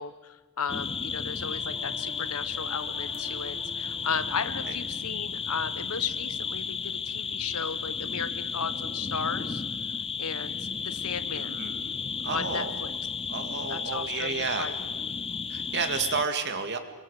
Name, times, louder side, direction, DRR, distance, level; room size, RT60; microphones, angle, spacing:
voice 1, 0.0-9.6 10.2-11.6 12.3-12.9 13.7-14.7, left 6 dB, 80° left, 13 dB, 1.1 m, -35 dB
sound 1, 0.7-16.2, left 6 dB, 25° left, 0.7 m, -33 dB
Singing / Musical instrument, 1.2-10.8, right 2 dB, 70° right, 6.4 m, -51 dB
voice 2, 11.3-11.9 12.2-12.7 13.3-14.7 15.5-16.8, right 5 dB, 50° right, 7 dB, 2.1 m, -31 dB
28.0 x 23.0 x 5.0 m, 1.3 s
head